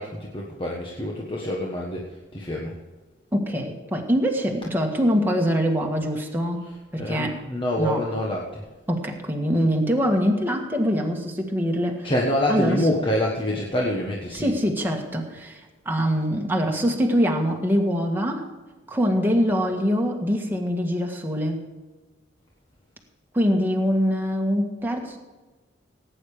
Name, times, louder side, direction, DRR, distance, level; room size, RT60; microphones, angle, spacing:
voice 1, 0.0-2.7 6.6-8.6 12.0-14.5, left 1 dB, 25° left, -2 dB, 1.4 m, -26 dB
voice 2, 3.3-6.6 6.9-7.4 7.8-8.0 8.9-12.1 12.5-12.8 14.3-15.6 15.8-18.5 18.9-21.6 23.3-25.2, equal, 10° right, 1 dB, 1.7 m, -23 dB
17.0 x 9.0 x 5.1 m, 1.2 s
head